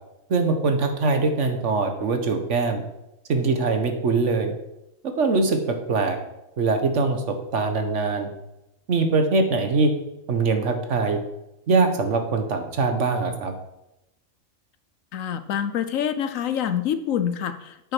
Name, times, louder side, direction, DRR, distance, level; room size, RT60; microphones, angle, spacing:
voice 1, 0.3-2.8 3.3-4.5 5.0-6.2 6.6-8.3 8.9-9.9 10.3-11.2 11.7-13.5, right 3 dB, 65° right, 6 dB, 1.5 m, -22 dB
voice 2, 15.1-17.9, left 9 dB, 75° left, 11 dB, 1.1 m, -26 dB
8.9 x 6.4 x 6.0 m, 0.89 s
omnidirectional pair, 1.4 m